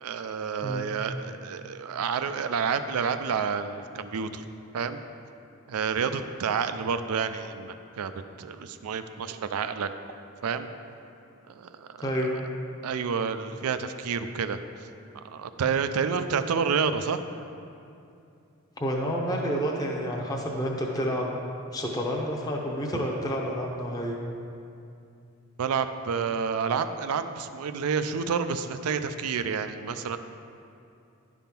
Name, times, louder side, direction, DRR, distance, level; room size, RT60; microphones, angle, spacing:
voice 1, 0.0-4.4 4.7-5.0 5.7-8.1 8.4-9.9 10.4-10.7 11.5-12.1 12.8-14.9 15.2-17.2 22.9-23.0 25.6-30.2, right 6 dB, 85° right, 10 dB, 0.4 m, -29 dB
voice 2, 18.8-21.3 21.7-24.1, equal, 15° left, -1 dB, 0.6 m, -29 dB
10.5 x 3.6 x 5.8 m, 2.6 s
head